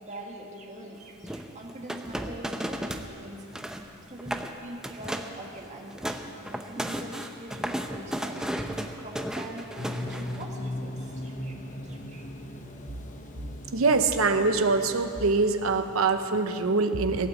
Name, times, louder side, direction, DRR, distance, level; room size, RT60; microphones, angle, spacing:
voice 1, 0.0-3.6 4.1-8.4 9.0-12.3, right 1 dB, 35° right, 0 dB, 1.8 m, -43 dB
sound 1, 1.2-3.1 3.4-3.9 4.2-4.5 4.8-5.4 5.7-10.4, equal, 5° right, 0.6 m, -34 dB
sound 2, 9.8-16.7, left 1 dB, 35° left, 0.9 m, -39 dB
voice 2, 13.7-17.3, right 3 dB, 85° right, 8 dB, 0.8 m, -24 dB
17.0 x 8.8 x 7.8 m, 2.7 s
head